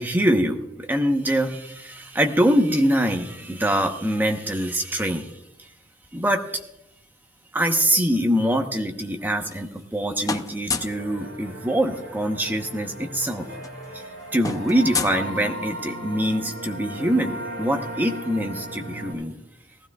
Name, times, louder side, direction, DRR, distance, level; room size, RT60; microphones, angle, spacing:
voice 1, 0.0-5.3 5.6-5.7 6.1-6.4 7.5-13.5 13.9-14.0 14.3-19.4, equal, 10° right, 4 dB, 0.9 m, -24 dB
sound 1, 9.2-10.0 10.2-11.1 12.4-12.5 12.8-13.0 13.3-15.9, left 4 dB, 20° left, 0.5 m, -32 dB
sound 2, 10.7-19.1, right 1 dB, 75° right, 4.8 m, -36 dB
19.5 x 15.5 x 2.4 m, 0.88 s
head